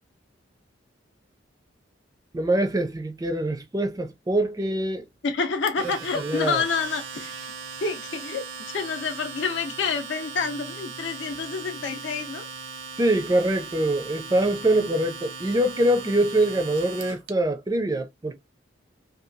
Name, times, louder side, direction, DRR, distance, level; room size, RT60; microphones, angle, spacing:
voice 1, 2.3-5.1 6.2-6.6 13.0-18.3, right 1 dB, 20° right, 0.3 m, -24 dB
voice 2, 5.2-7.3 7.8-12.5, left 5 dB, 70° left, 0.6 m, -28 dB
Domestic sounds home sounds, 5.7-17.3, right 5 dB, 80° right, 0.7 m, -39 dB
2.8 x 2.3 x 2.5 m
head